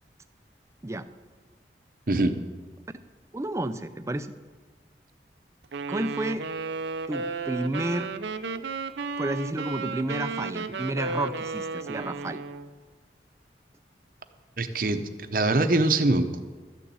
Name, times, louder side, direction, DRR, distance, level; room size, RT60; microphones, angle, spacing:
voice 1, 2.1-2.4 14.6-15.0 15.3-16.4, right 2 dB, 50° right, 8 dB, 0.8 m, -23 dB
voice 2, 3.3-4.3 5.9-6.5 7.1-8.1 9.2-12.4, right 1 dB, 15° right, 11 dB, 0.4 m, -31 dB
Wind instrument woodwind instrument, 5.7-12.7, right 4 dB, 85° right, 0.6 m, -33 dB
12.5 x 7.0 x 7.7 m, 1.4 s
head